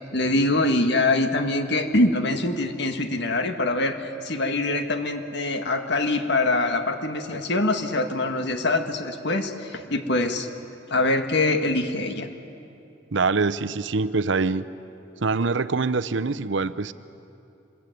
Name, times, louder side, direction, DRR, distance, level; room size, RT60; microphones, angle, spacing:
voice 1, 0.1-10.5 10.9-12.3, left 2 dB, 60° left, 6 dB, 1.9 m, -24 dB
voice 2, 13.1-14.7 15.2-16.9, right 4 dB, 65° right, 12 dB, 0.7 m, -24 dB
26.0 x 21.5 x 9.3 m, 2.7 s
head